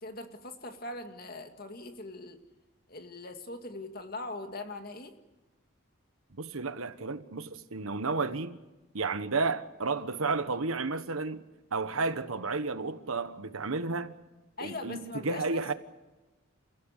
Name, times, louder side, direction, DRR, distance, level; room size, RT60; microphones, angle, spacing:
voice 1, 0.0-2.4 2.9-5.1 14.6-15.6, left 2 dB, 45° left, 2.1 m, -41 dB
voice 2, 6.3-8.6 8.9-11.4 11.7-14.1 14.6-15.7, right 3 dB, 85° right, 1.3 m, -32 dB
29.0 x 16.0 x 8.2 m
head